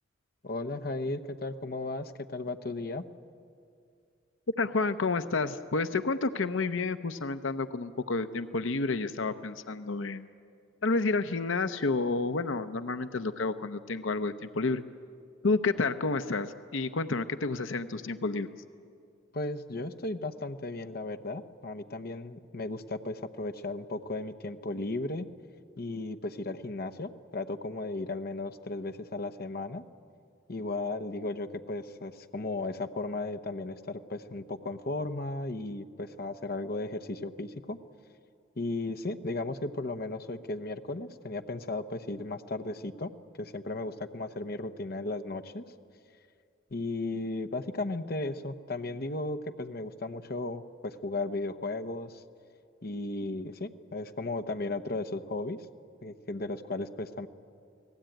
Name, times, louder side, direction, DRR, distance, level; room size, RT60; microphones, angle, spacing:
voice 1, 0.4-3.1 19.3-25.3 25.8-29.8 30.5-37.8 38.6-43.1 43.4-45.6 46.7-52.2 52.8-55.6 56.0-57.3, left 2 dB, 50° left, 9 dB, 0.9 m, -35 dB
voice 2, 4.6-10.3 10.8-14.8 15.4-18.5, left 3 dB, 80° left, 11 dB, 0.8 m, -30 dB
29.5 x 19.0 x 9.1 m, 2.4 s
head